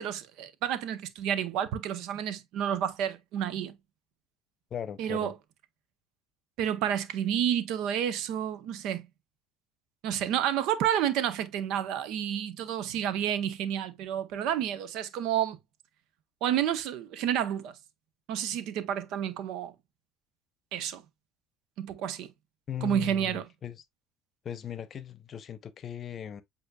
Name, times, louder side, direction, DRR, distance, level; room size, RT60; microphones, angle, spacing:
voice 1, 0.0-3.8 5.0-5.3 6.6-9.1 10.0-15.6 16.4-17.8 18.3-19.7 20.7-21.0 21.8-22.3 22.8-23.4, right 10 dB, 65° right, 0.8 m, -30 dB
voice 2, 4.7-5.3 22.7-23.8 24.4-26.4, left 9 dB, 40° left, 0.7 m, -38 dB
7.8 x 2.8 x 2.3 m
hypercardioid pair, 80°, 0 cm